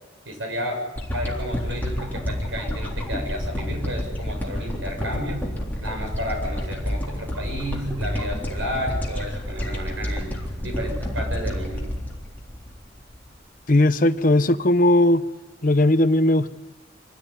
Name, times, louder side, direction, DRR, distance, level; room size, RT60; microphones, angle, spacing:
voice 1, 0.2-0.8 1.1-5.5 5.8-10.3 10.6-11.9, equal, 85° right, 6.5 m, -32 dB
sound 1, 1.0-13.3 13.7-13.8, equal, 10° left, 3.6 m, -29 dB
voice 2, 13.7-15.2 15.6-16.5, left 1 dB, 45° left, 0.9 m, -18 dB
25.0 x 16.0 x 9.6 m
head